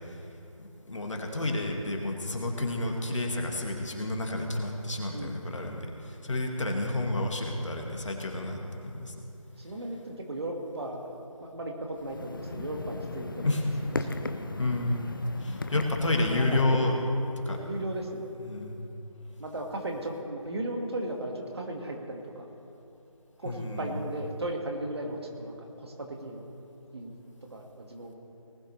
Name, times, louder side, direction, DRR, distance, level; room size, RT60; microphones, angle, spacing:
voice 1, 0.6-9.1 13.4-13.6 14.6-15.1 15.4-16.9 17.5-17.6 18.4-18.8 23.5-24.0, left 2 dB, 60° left, 1 dB, 2.0 m, -30 dB
voice 2, 9.6-11.1 11.4-13.6 14.0-14.1 16.3-16.8 17.4-18.3 19.4-22.4 23.4-26.5 26.9-27.1 27.5-28.1, right 1 dB, 50° right, 1 dB, 1.9 m, -36 dB
sound 1, 12.0-16.6, left 3 dB, 40° left, 0.6 m, -36 dB
19.5 x 12.0 x 3.3 m, 2.8 s
figure-of-eight pair, 165°, 18 cm